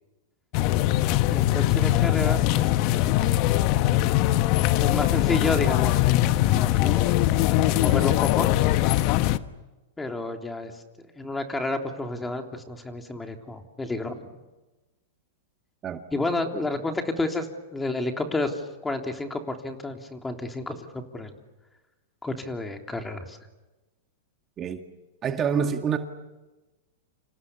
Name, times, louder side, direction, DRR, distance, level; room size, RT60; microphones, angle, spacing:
sound 1, 0.5-9.4, left 14 dB, 50° left, 1.1 m, -21 dB
voice 1, 1.3-3.3 4.8-7.1 7.5-8.5 10.0-10.7 11.2-14.3 16.1-21.3 22.2-23.4, left 2 dB, 10° left, 3.4 m, -31 dB
voice 2, 25.2-26.0, right 7 dB, 30° right, 1.9 m, -26 dB
29.5 x 27.5 x 7.0 m
hypercardioid pair, 110°, 0 cm